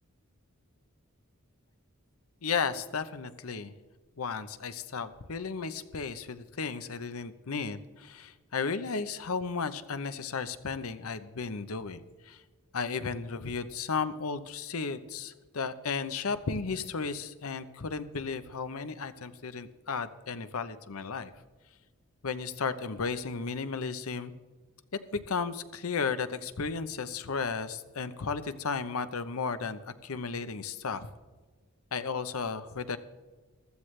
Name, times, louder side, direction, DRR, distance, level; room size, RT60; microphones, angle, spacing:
voice 1, 2.4-3.7 4.2-12.4 12.7-21.3 22.2-24.3 25.1-31.1 31.9-33.0, left 5 dB, 80° left, 12 dB, 0.8 m, -34 dB
15.5 x 13.0 x 3.3 m, 1.4 s
head